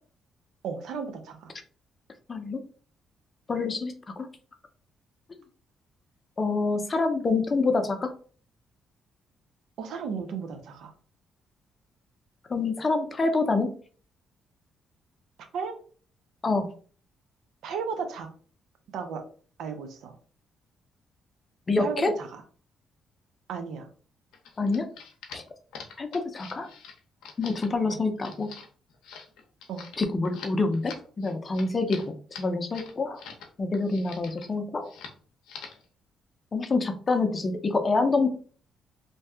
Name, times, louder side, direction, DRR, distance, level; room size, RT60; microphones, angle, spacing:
voice 1, 0.6-1.5 9.8-10.9 15.4-15.8 17.6-18.3 18.9-19.2 19.6-20.1 21.8-22.4 23.5-23.9 27.9-28.0 29.7-29.8, right 5 dB, 75° right, 6 dB, 0.6 m, -34 dB
voice 2, 2.3-2.6 3.5-4.3 6.4-8.1 12.5-13.7 16.4-16.7 21.7-22.1 24.6-24.9 25.3-25.4 26.0-26.7 27.4-28.5 30.0-33.2 33.6-34.9 36.5-38.3, left 3 dB, 35° left, 7 dB, 0.6 m, -26 dB
sound 1, 24.3-33.5 33.7-34.5 34.8-35.2 35.4-35.8, left 6 dB, 85° left, 0.6 m, -45 dB
2.6 x 2.3 x 3.4 m, 0.42 s
cardioid pair, 90°, 0 cm